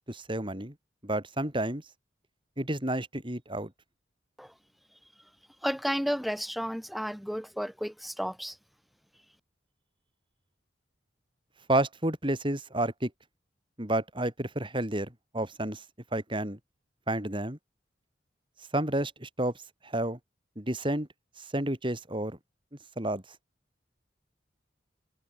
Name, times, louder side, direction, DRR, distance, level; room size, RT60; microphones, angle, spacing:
voice 1, 0.1-0.7 1.0-1.8 2.6-3.7 11.7-13.1 13.8-15.8 16.1-16.6 17.1-17.6 18.7-19.5 19.8-20.2 20.6-21.1 21.4-22.4 23.0-23.2, right 1 dB, 30° right, 6.3 m, -30 dB
voice 2, 5.6-8.6, equal, ahead, 4.6 m, -32 dB
head